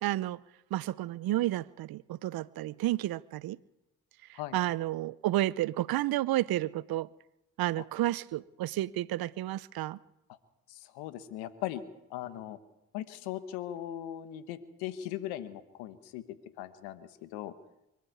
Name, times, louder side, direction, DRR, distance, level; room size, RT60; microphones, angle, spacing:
voice 1, 0.0-0.4 0.7-3.6 4.5-7.1 7.6-10.0, right 15 dB, 70° right, 22 dB, 0.7 m, -31 dB
voice 2, 10.7-11.8 12.1-12.6 12.9-17.5, left 12 dB, 90° left, 13 dB, 1.3 m, -39 dB
23.5 x 13.0 x 9.4 m, 0.91 s
hypercardioid pair, 45°, 37 cm